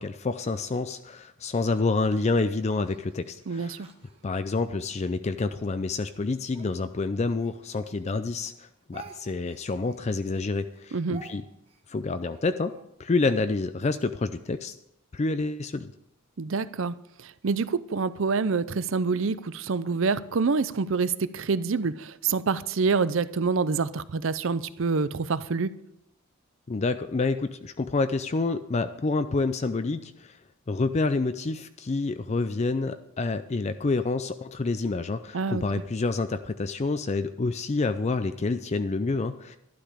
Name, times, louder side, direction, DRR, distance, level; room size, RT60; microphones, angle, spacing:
voice 1, 0.0-3.8 4.2-11.4 11.9-12.7 13.0-14.7 15.1-15.9 26.7-30.4 30.7-39.6, left 3 dB, 30° left, 10 dB, 0.4 m, -28 dB
Speech, 1.7-4.8 5.4-8.2 8.4-12.9, right 4 dB, 30° right, 1.4 m, -52 dB
voice 2, 3.5-3.9 10.9-11.2 16.4-16.9 17.4-25.7 35.3-35.6, right 4 dB, 65° right, 15 dB, 0.5 m, -26 dB
12.0 x 12.0 x 5.0 m, 0.80 s
head